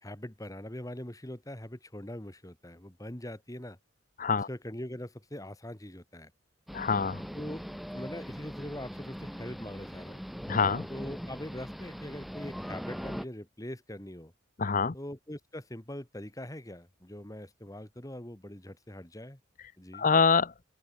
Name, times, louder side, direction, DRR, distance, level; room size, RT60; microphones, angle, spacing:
voice 1, 0.0-3.8 4.5-6.3 7.3-10.2 10.9-14.3 14.9-19.4 19.8-20.1, left 1 dB, 15° left, 1.9 m, -42 dB
voice 2, 6.7-7.2 10.5-10.9 14.6-14.9 19.9-20.5, left 5 dB, 40° left, 0.7 m, -25 dB
sound 1, 6.7-13.2, equal, ahead, 4.7 m, -41 dB
open air
head